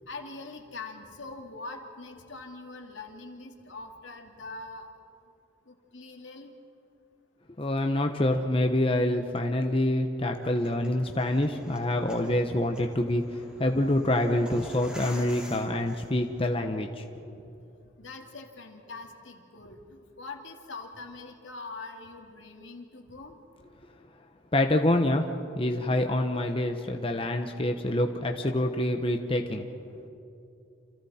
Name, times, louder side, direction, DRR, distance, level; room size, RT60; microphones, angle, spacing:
voice 1, 0.1-4.9 5.7-6.5 18.0-23.4, left 3 dB, 85° left, 2 dB, 2.6 m, -43 dB
voice 2, 7.6-13.2 13.6-17.0 24.5-25.3 25.5-29.7, left 1 dB, 30° left, 4 dB, 1.0 m, -26 dB
sound 1, 10.4-16.5, left 1 dB, 5° right, 3.5 m, -47 dB
29.0 x 28.0 x 4.4 m, 2.8 s
head